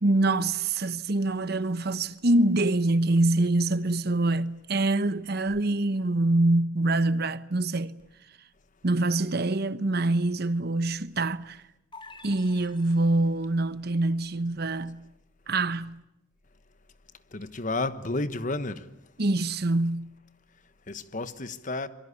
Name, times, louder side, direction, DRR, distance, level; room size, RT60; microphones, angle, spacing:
voice 1, 0.0-8.0 8.8-11.6 12.2-15.0 15.5-16.0 19.2-20.1, right 2 dB, 55° right, 1.1 m, -25 dB
sound 1, 11.9-13.5, left 3 dB, 25° left, 3.2 m, -49 dB
voice 2, 17.3-18.8 20.9-21.9, left 2 dB, 40° left, 1.2 m, -31 dB
26.0 x 23.5 x 8.4 m
head